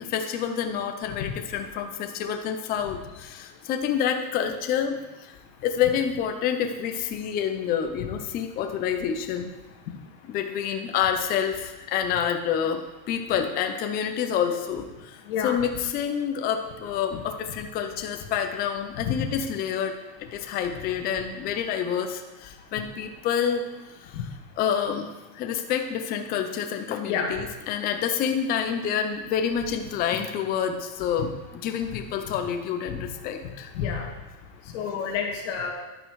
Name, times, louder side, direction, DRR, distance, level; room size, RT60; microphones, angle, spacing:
voice 1, 0.0-5.3 5.6-9.5 10.2-19.9 20.3-23.6 23.9-24.3 24.6-25.1 25.3-33.7, left 8 dB, 20° left, 5 dB, 0.6 m, -28 dB
voice 2, 19.0-19.3 24.1-24.2 27.0-27.3 33.7-34.1 34.7-35.7, left 7 dB, 50° left, 2 dB, 2.0 m, -28 dB
10.5 x 8.7 x 4.7 m, 1.1 s
supercardioid pair, 155°, 45 cm